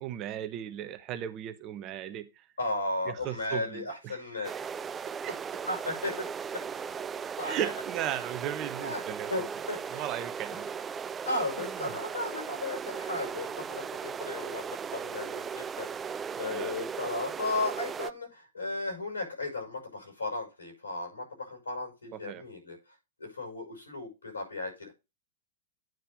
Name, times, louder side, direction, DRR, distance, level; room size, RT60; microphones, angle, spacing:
voice 1, 0.0-2.3 3.1-4.6 5.2-5.4 7.4-9.4 9.9-10.7 11.8-12.0 16.5-16.7 22.1-22.4, right 11 dB, 35° right, 1.0 m, -36 dB
voice 2, 2.6-4.5 5.7-6.3 7.4-7.7 8.8-9.0 9.3-10.0 11.2-15.9 16.4-22.8 23.2-24.9, left 2 dB, 80° left, 5.6 m, -35 dB
sound 1, 4.4-18.1, right 6 dB, 20° right, 0.4 m, -37 dB
9.3 x 4.6 x 5.0 m
figure-of-eight pair, 105°, 0 cm